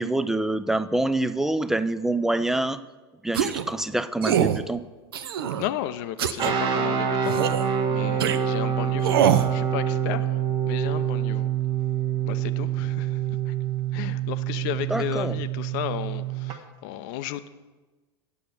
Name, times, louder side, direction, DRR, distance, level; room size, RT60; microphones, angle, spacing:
voice 1, 0.0-2.8 3.2-4.8 14.9-15.3, right 2 dB, 5° right, 14 dB, 0.4 m, -26 dB
sound 1, 3.3-3.7 4.2-4.6 5.1-5.7 6.2-6.5 7.3-7.6 8.2-8.4 9.0-9.5, right 9 dB, 65° right, 0.6 m, -23 dB
voice 2, 5.6-10.4 10.6-11.5 12.2-13.5 13.9-17.5, left 12 dB, 50° left, 13 dB, 0.6 m, -34 dB
sound 2, 6.4-16.6, right 9 dB, 35° right, 0.9 m, -26 dB
9.2 x 6.9 x 6.9 m, 1.2 s
figure-of-eight pair, 85°, 13 cm